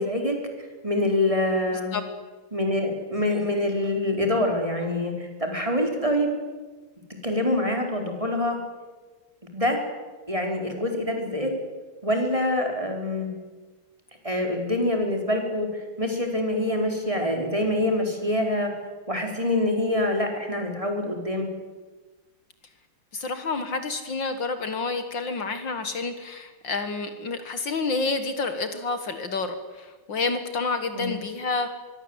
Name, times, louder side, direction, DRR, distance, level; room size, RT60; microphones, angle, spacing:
voice 1, 0.0-2.0 2.5-6.3 7.2-8.6 9.5-9.8 10.3-11.5 12.0-13.3 14.2-18.7 19.1-21.5 30.9-31.1, left 1 dB, 15° right, 3 dB, 4.3 m, -25 dB
voice 2, 23.1-31.7, left 3 dB, 60° left, 9 dB, 2.3 m, -29 dB
24.5 x 22.5 x 8.0 m, 1.3 s
omnidirectional pair, 2.3 m